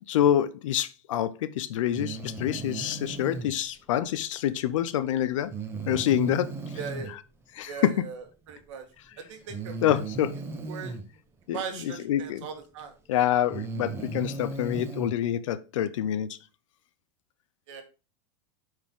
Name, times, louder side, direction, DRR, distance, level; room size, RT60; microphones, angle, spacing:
voice 1, 0.1-5.5 5.9-6.6 7.1-7.2 7.5-8.1 9.8-10.4 11.5-12.5 13.1-16.3, left 11 dB, 85° left, 0.8 m, -27 dB
Breathing, 1.9-3.5 5.5-7.1 8.5-8.6 9.5-11.0 12.6-12.7 13.4-15.1, right 3 dB, 15° right, 1.2 m, -36 dB
voice 2, 6.8-7.1 7.7-8.8 9.2-10.0 10.7-10.9 11.5-12.9 17.7-17.8, right 6 dB, 75° right, 1.7 m, -39 dB
9.5 x 4.7 x 3.7 m
supercardioid pair, 145°, 16 cm